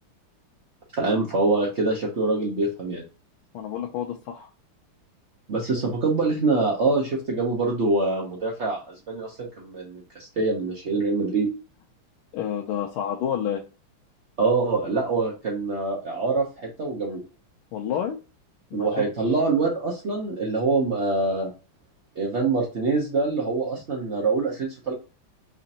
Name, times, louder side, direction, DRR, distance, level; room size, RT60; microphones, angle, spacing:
voice 1, 1.0-3.0 5.5-11.5 14.4-17.2 18.7-21.5 22.2-24.9, right 3 dB, 80° right, -2 dB, 0.6 m, -25 dB
voice 2, 3.5-4.5 12.3-13.6 17.7-18.2 18.7-18.9, left 9 dB, 80° left, 1 dB, 1.4 m, -29 dB
5.0 x 2.5 x 2.7 m, 0.32 s
omnidirectional pair, 2.4 m